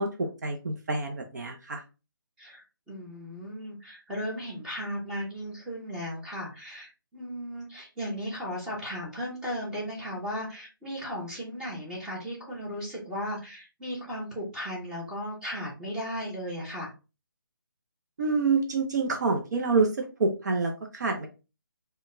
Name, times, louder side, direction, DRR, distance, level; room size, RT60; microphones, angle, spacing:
voice 1, 0.0-1.8 18.2-21.3, right 4 dB, 50° right, 3 dB, 0.6 m, -27 dB
voice 2, 2.4-16.9, equal, 5° right, -5 dB, 0.7 m, -36 dB
3.7 x 2.1 x 2.5 m, 0.30 s
figure-of-eight pair, 160°, 12 cm